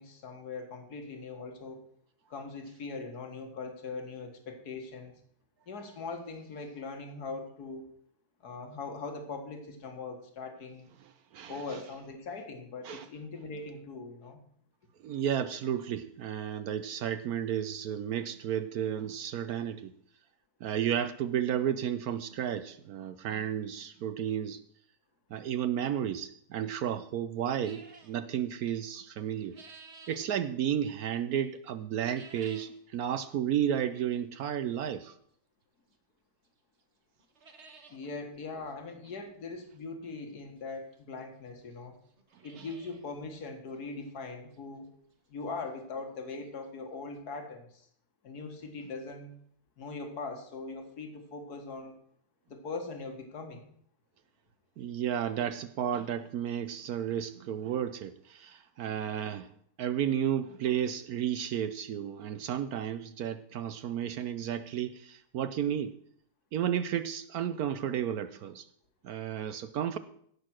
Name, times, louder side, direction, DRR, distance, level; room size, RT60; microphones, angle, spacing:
voice 1, 0.0-1.8 2.3-5.1 5.7-7.9 8.4-10.9 11.5-14.4 37.9-42.0 42.4-44.9 45.3-47.9 48.2-49.3 49.8-52.0 52.5-53.6, left 3 dB, 60° left, 5 dB, 2.3 m, -41 dB
voice 2, 11.3-11.8 12.8-13.1 15.0-19.9 20.6-24.6 25.3-29.6 30.1-35.2 42.5-42.7 54.8-59.5 59.8-65.9 66.5-68.7 69.0-70.0, right 9 dB, 65° right, 13 dB, 1.0 m, -32 dB
sound 1, 27.6-28.2 29.1-30.3 32.0-32.8 33.2-33.3 34.1-34.2 35.9-36.0 36.4-36.5 36.8-36.9 37.2-38.0 38.3-38.4 38.7-38.8 40.3-40.4 41.2-41.3 41.5-41.6 42.1-43.1 43.4-43.5 44.0-44.1 44.5-44.6 46.4-46.5 46.6-46.7 47.2-47.3, right 4 dB, 40° right, 1.5 m, -53 dB
16.5 x 6.4 x 6.2 m, 0.64 s
omnidirectional pair, 1.9 m